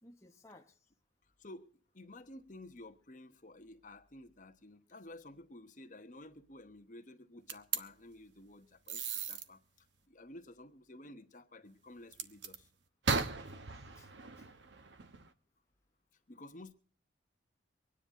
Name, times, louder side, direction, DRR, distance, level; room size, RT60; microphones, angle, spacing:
voice 1, 0.0-0.8 13.5-13.6 13.9-14.1 14.4-14.5, left 2 dB, 15° left, 1.0 m, -59 dB
voice 2, 1.4-12.7 16.3-16.7, left 1 dB, 40° left, 1.2 m, -53 dB
sound 1, 7.5-7.8 8.9-9.4 12.1-12.6 13.0-15.3, right 5 dB, 65° right, 1.1 m, -37 dB
24.5 x 10.0 x 3.7 m
head